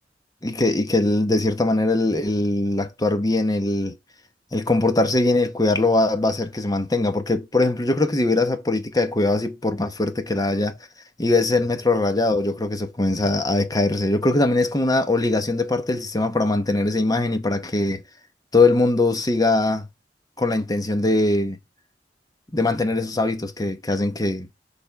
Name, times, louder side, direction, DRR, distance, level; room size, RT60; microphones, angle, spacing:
voice 1, 0.4-3.9 4.5-10.7 11.2-18.0 18.5-19.9 20.4-21.6 22.5-24.5, left 2 dB, 20° left, 0.9 m, -21 dB
6.8 x 3.5 x 5.2 m
head